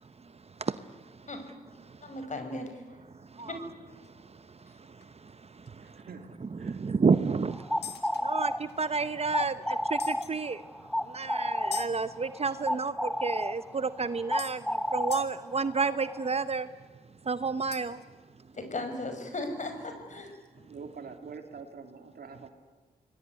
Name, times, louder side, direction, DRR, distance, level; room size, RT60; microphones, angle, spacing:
voice 1, 0.2-1.3 1.8-2.1 3.1-3.6 4.0-6.0 6.6-10.6 11.0-16.7 17.2-18.0, right 4 dB, 40° right, 13 dB, 0.8 m, -31 dB
voice 2, 2.0-2.7 18.5-20.3, left 2 dB, 50° left, 6 dB, 5.7 m, -36 dB
sound 1, 3.9-4.1 4.6-4.7 5.0-5.1 5.7-5.8 7.8-9.1 10.0-10.4 11.7-11.9 13.6-13.7 14.4-14.6 15.1-15.3 17.7-18.0, left 9 dB, 85° left, 1.8 m, -42 dB
voice 3, 5.8-6.8 12.5-12.6 20.6-22.5, right 5 dB, 70° right, 6 dB, 3.1 m, -45 dB
sound 2, 7.5-16.4, left 1 dB, 5° left, 0.7 m, -32 dB
26.5 x 20.5 x 9.7 m, 1.3 s
cardioid pair, 70°, 16 cm